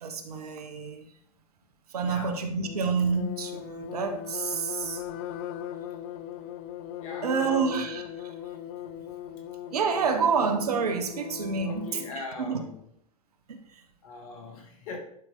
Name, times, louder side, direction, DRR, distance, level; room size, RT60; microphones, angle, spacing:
voice 1, 0.0-1.1 1.9-5.0 7.2-8.3 9.2-12.7 13.5-13.8, right 5 dB, 80° right, 1.2 m, -29 dB
voice 2, 2.0-2.4 7.0-7.9 11.6-12.8 14.0-15.0, left 3 dB, 65° left, 2.2 m, -41 dB
sound 1, 2.6-12.2, left 10 dB, 50° left, 0.6 m, -39 dB
10.5 x 5.0 x 3.8 m
hypercardioid pair, 95°, 19 cm